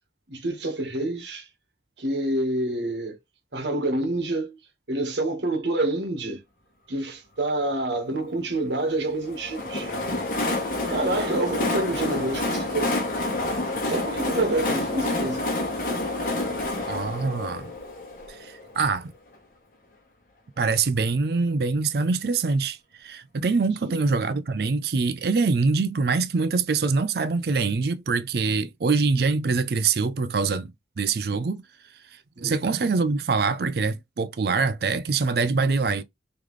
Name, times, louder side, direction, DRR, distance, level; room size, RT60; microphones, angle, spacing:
voice 1, 0.3-1.5 2.0-3.2 3.5-4.6 4.9-6.4 6.9-9.9 10.9-12.9 13.8-15.4 23.8-24.0 32.4-32.6, right 2 dB, 75° right, 1.4 m, -27 dB
Train, 9.3-18.9, left 2 dB, 50° left, 1.2 m, -28 dB
voice 2, 16.9-17.7 18.3-19.1 20.6-30.7 31.0-31.6 32.4-36.0, right 4 dB, 55° right, 0.4 m, -24 dB
3.8 x 3.2 x 3.2 m
head